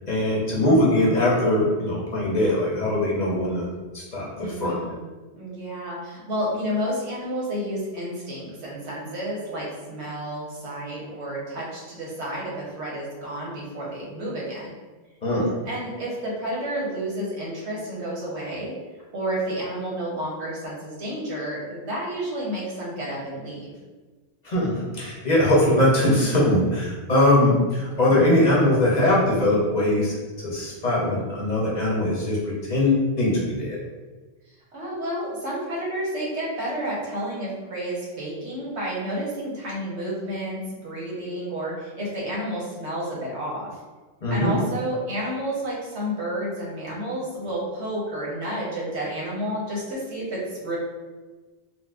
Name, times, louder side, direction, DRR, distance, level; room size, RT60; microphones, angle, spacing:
voice 1, 0.1-3.7 3.9-4.8 15.2-15.5 24.4-30.1 30.4-33.8 44.2-44.6, left 1 dB, 45° left, -5 dB, 0.8 m, -21 dB
voice 2, 4.4-5.0 5.3-14.7 15.6-18.7 19.1-23.7 34.7-43.7 44.3-50.8, equal, 90° right, -5 dB, 1.3 m, -30 dB
4.0 x 2.2 x 2.4 m, 1.3 s
omnidirectional pair, 1.1 m